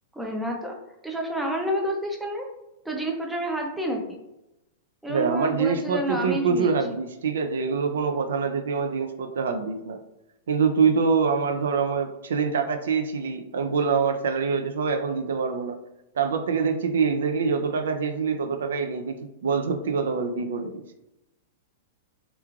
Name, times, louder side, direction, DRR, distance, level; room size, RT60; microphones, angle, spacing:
voice 1, 0.1-0.8 1.0-2.4 2.8-4.2 5.0-6.7, right 1 dB, 5° right, 0 dB, 0.4 m, -29 dB
voice 2, 5.1-10.0 10.5-15.8 16.1-20.8, right 5 dB, 85° right, 6 dB, 0.3 m, -25 dB
3.0 x 2.3 x 2.3 m, 0.92 s
hypercardioid pair, 150°, 0 cm